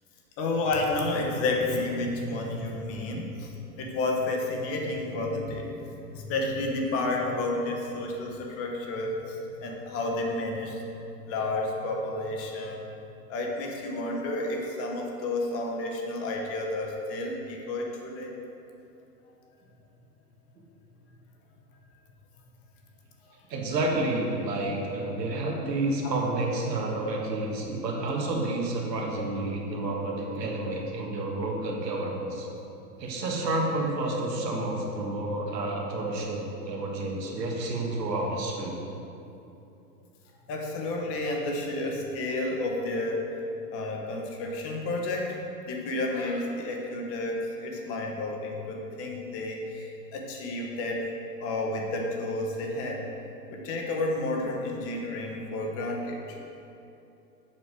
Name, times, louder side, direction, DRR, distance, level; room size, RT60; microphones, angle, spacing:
voice 1, 0.4-10.8 11.3-12.8 13.3-18.3 40.5-43.3 43.7-45.4 45.7-51.0 51.4-53.0 53.5-56.4, left 2 dB, 30° left, 0 dB, 1.0 m, -31 dB
voice 2, 23.5-32.5 33.0-38.8, right 2 dB, 90° right, -1 dB, 1.6 m, -30 dB
7.5 x 5.4 x 4.7 m, 2.9 s
hypercardioid pair, 130°, 48 cm